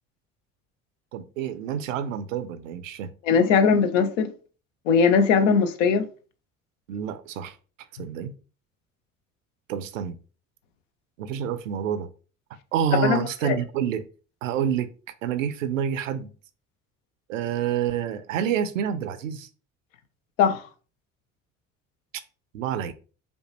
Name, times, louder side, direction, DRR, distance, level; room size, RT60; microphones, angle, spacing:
voice 1, 1.1-3.1 6.9-7.6 8.0-8.3 9.7-10.2 11.2-12.1 12.7-14.1 14.4-14.9 15.2-16.3 17.3-19.5 22.5-22.9, right 8 dB, 85° right, 0.5 m, -28 dB
voice 2, 3.2-4.3 4.9-6.1 13.0-13.6 20.4-20.6, left 6 dB, 80° left, 0.6 m, -20 dB
5.2 x 2.2 x 3.0 m
hypercardioid pair, 60°, 38 cm